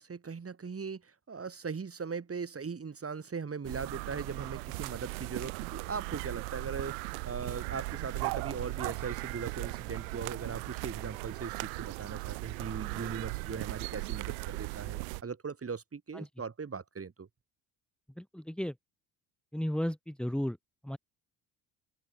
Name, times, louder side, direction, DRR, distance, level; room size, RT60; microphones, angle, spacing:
voice 1, 0.0-17.3, right 5 dB, 35° right, 7.5 m, -39 dB
sound 1, 3.6-15.2, right 35 dB, 80° right, 1.3 m, -38 dB
voice 2, 18.2-18.7 19.5-20.6 20.8-21.0, equal, ahead, 3.3 m, -34 dB
hypercardioid pair, 65°, 42 cm